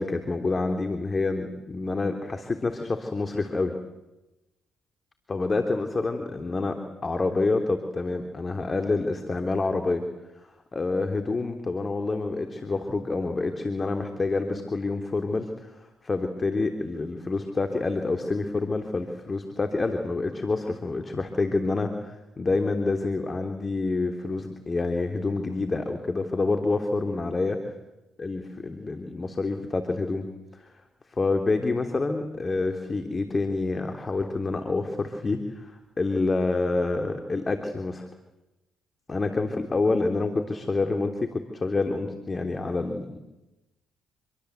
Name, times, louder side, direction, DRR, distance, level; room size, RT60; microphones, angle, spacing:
voice 1, 0.0-3.7 5.3-10.0 10.7-27.6 28.2-30.3 30.5-30.7 31.1-35.7 36.0-38.1 39.1-43.2, left 3 dB, 30° left, 5 dB, 3.2 m, -27 dB
27.0 x 23.5 x 8.2 m, 0.99 s
hypercardioid pair, 55°, 0 cm